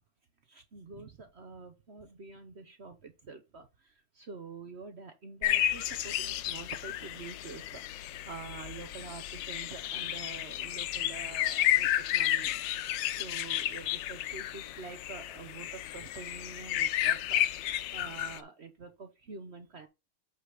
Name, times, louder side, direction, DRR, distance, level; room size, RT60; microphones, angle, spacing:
voice 1, 0.5-7.8 8.2-12.6 13.1-17.5 17.9-19.9, right 4 dB, 50° right, 0.8 m, -46 dB
sound 1, 5.4-18.4, left 13 dB, 75° left, 1.3 m, -32 dB
8.4 x 3.9 x 4.9 m
omnidirectional pair, 2.1 m